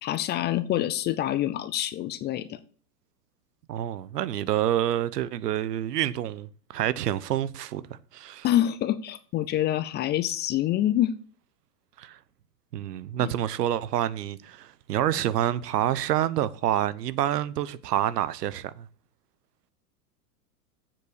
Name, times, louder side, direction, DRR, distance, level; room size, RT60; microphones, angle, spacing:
voice 1, 0.0-2.6 8.4-11.1 13.2-13.3, left 12 dB, 25° left, 0.4 m, -26 dB
voice 2, 3.7-8.5 12.0-12.2 12.7-18.9, right 11 dB, 80° right, 0.9 m, -28 dB
7.6 x 7.0 x 6.6 m
hypercardioid pair, 110°, 48 cm